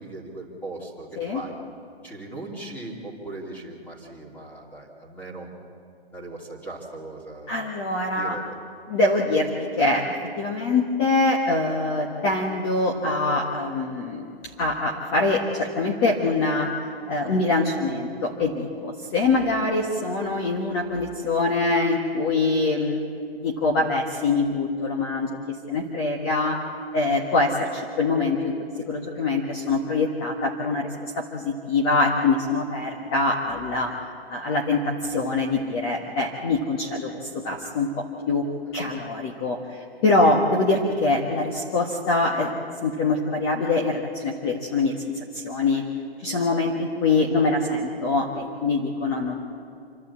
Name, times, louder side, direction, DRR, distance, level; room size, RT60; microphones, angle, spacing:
voice 1, 0.0-1.6 2.0-5.5 6.1-7.6 8.2-8.5 32.9-33.0 38.6-38.9, right 2 dB, 5° left, -3 dB, 2.7 m, -39 dB
voice 2, 7.5-8.4 8.9-10.1 10.4-14.3 14.6-16.7 17.1-23.0 23.4-26.6 26.9-28.5 28.9-33.9 34.3-37.2 37.4-37.9 38.3-38.4 38.7-45.8 46.2-49.3, left 3 dB, 25° left, 0 dB, 1.5 m, -24 dB
28.0 x 12.0 x 8.4 m, 2.5 s
hypercardioid pair, 160°, 32 cm